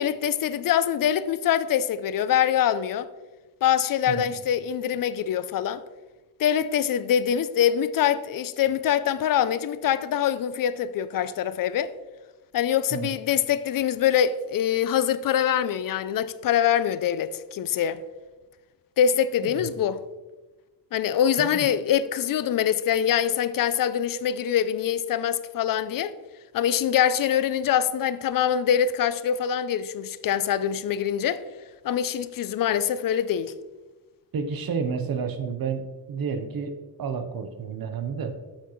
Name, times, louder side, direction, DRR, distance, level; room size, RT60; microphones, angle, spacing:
voice 1, 0.0-3.1 3.6-5.8 6.4-11.9 12.5-18.0 19.0-20.0 20.9-26.1 26.5-31.4 31.8-33.5, left 9 dB, 60° left, 0.5 m, -24 dB
voice 2, 34.3-35.8 36.1-36.7 37.0-38.3, right 6 dB, 65° right, 0.9 m, -30 dB
9.0 x 7.2 x 3.1 m
wide cardioid pair, 175°, 39 cm